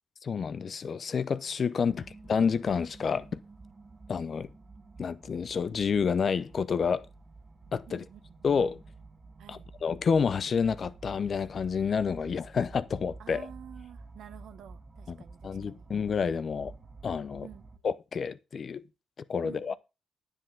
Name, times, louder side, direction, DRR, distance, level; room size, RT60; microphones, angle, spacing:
voice 1, 0.2-3.4 4.1-4.5 5.0-7.1 7.7-8.0 8.4-8.8 9.5-13.4 15.1-15.2 15.4-16.7 17.0-17.5 17.8-18.9 19.3-19.7, left 6 dB, 45° left, 0.6 m, -29 dB
voice 2, 1.7-2.2 7.9-8.5 9.4-9.7 13.2-15.9 17.4-17.7 19.4-19.8, right 10 dB, 75° right, 0.9 m, -50 dB
sound 1, 1.8-17.8, right 3 dB, 30° right, 1.0 m, -50 dB
9.9 x 7.6 x 3.8 m
cardioid pair, 90°, 0 cm